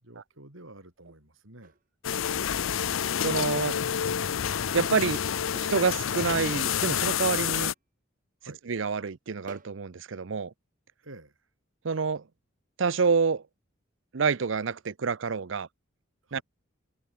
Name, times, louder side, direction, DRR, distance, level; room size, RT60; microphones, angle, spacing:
voice 1, 0.0-1.8 8.4-8.6 11.0-11.5 16.2-16.4, right 2 dB, 85° right, 5.7 m, -49 dB
sound 1, 1.6-1.8 3.6-3.8 5.6-5.9 6.2-6.3 7.5-7.8 9.5-9.8, right 2 dB, 45° right, 2.8 m, -47 dB
sound 2, 2.0-7.7, left 8 dB, 85° left, 0.6 m, -28 dB
voice 2, 3.2-3.8 4.7-5.2 5.7-7.7 8.7-10.5 11.8-12.2 12.8-13.4 14.1-15.7 16.3-16.4, right 5 dB, 65° right, 0.6 m, -27 dB
head